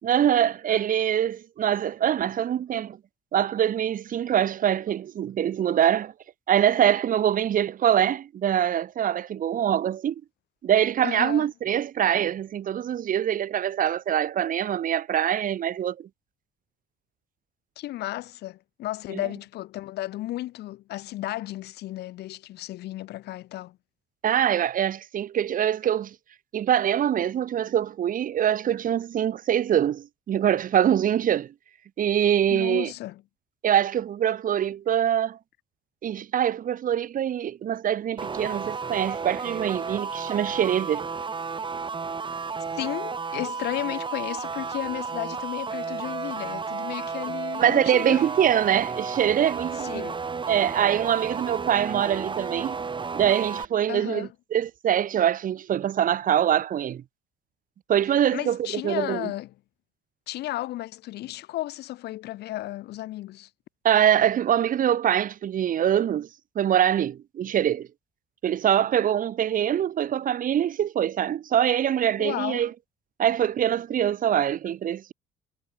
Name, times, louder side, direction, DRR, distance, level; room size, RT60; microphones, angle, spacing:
voice 1, 0.0-3.0 3.3-6.1 6.5-10.1 10.6-16.1 19.1-19.2 24.2-26.1 26.5-31.5 32.0-32.9 33.6-35.4 36.0-41.0 47.6-50.0 50.5-52.8 53.1-57.0 57.9-59.3 63.8-66.3 66.5-67.9 68.4-72.7 73.2-75.1, right 10 dB, 55° right, 4.9 m, -24 dB
voice 2, 11.0-11.5 17.8-23.8 32.5-33.2 42.7-48.3 49.8-50.2 53.9-54.3 58.3-59.5 60.3-63.5 72.2-72.7, left 15 dB, 75° left, 5.8 m, -34 dB
sound 1, 38.2-53.6, right 5 dB, 30° right, 6.3 m, -32 dB
cardioid pair, 110°, 17 cm